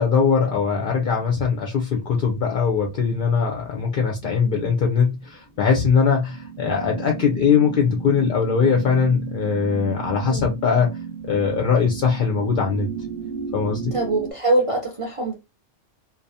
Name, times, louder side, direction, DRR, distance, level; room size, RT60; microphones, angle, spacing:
voice 1, 0.0-10.9 11.2-12.9 13.5-13.9, left 6 dB, 65° left, 0.5 m, -21 dB
sound 1, 1.9-4.3 4.6-14.3, right 6 dB, 15° right, 0.6 m, -35 dB
voice 2, 10.2-10.6 13.9-15.3, right 2 dB, 55° right, 0.3 m, -23 dB
2.5 x 2.2 x 2.6 m
omnidirectional pair, 1.3 m